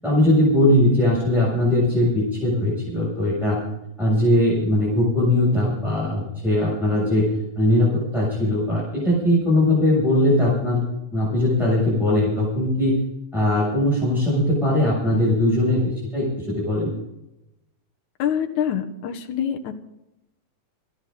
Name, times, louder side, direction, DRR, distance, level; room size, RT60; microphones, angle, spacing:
voice 1, 0.0-3.6 4.0-10.8 11.1-13.0 13.3-16.9, left 1 dB, ahead, -8 dB, 7.3 m, -20 dB
voice 2, 18.2-19.7, left 9 dB, 85° left, 4 dB, 2.6 m, -25 dB
27.5 x 11.0 x 4.0 m, 0.89 s
omnidirectional pair, 3.3 m